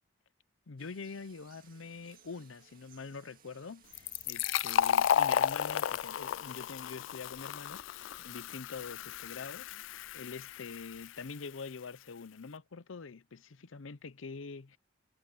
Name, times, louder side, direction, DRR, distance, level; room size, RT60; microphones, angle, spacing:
voice 1, 0.7-7.8 8.2-9.9 10.1-14.8, left 4 dB, 90° left, 0.7 m, -45 dB
sound 1, 0.8-6.1, right 8 dB, 50° right, 2.0 m, -62 dB
Fill (with liquid), 3.9-11.3, left 9 dB, 70° left, 0.3 m, -33 dB
sound 2, 6.4-11.8, right 5 dB, 85° right, 2.8 m, -69 dB
head